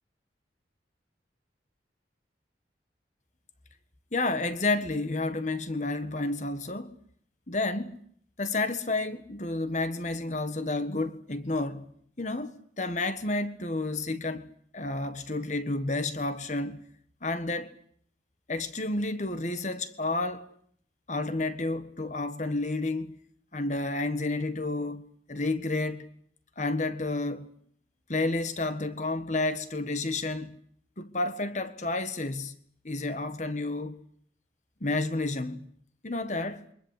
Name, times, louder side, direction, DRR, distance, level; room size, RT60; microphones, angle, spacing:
voice 1, 4.1-7.0 7.5-8.0 8.4-11.9 12.2-14.5 14.7-16.8 17.2-17.7 18.5-20.5 21.1-23.2 23.5-26.1 26.6-27.5 28.1-30.6 31.0-32.6 32.8-34.0 34.8-35.7 36.0-36.7, left 2 dB, 40° left, 1.5 m, -30 dB
28.0 x 24.0 x 8.3 m
head